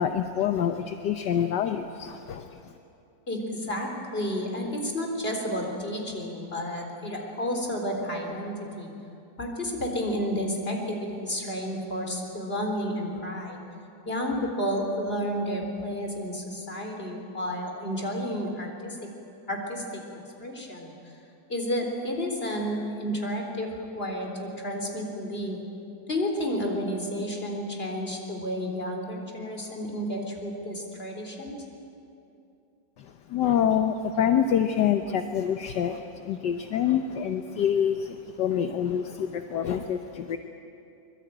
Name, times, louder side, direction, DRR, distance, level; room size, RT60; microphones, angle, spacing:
voice 1, 0.0-2.6 33.0-40.4, left 9 dB, 70° left, 6 dB, 1.5 m, -26 dB
voice 2, 3.3-8.9 9.4-13.6 14.0-19.0 19.5-20.0 20.4-21.1 21.5-25.6 26.1-31.6, equal, 30° left, 2 dB, 4.1 m, -31 dB
24.5 x 22.5 x 9.0 m, 2.6 s
omnidirectional pair, 2.0 m